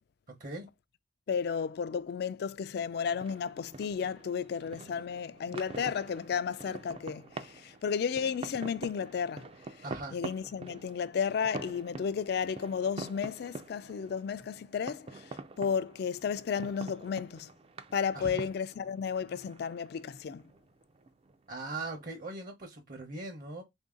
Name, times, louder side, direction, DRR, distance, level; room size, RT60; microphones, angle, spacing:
voice 1, 1.3-9.5 10.1-17.5 17.9-20.4, left 6 dB, 60° left, 0.3 m, -33 dB
sound 1, 2.8-22.1, right 3 dB, 35° right, 0.4 m, -46 dB
voice 2, 9.8-10.2 18.1-18.4 21.5-23.6, right 2 dB, 50° right, 0.9 m, -40 dB
3.6 x 2.7 x 3.6 m
head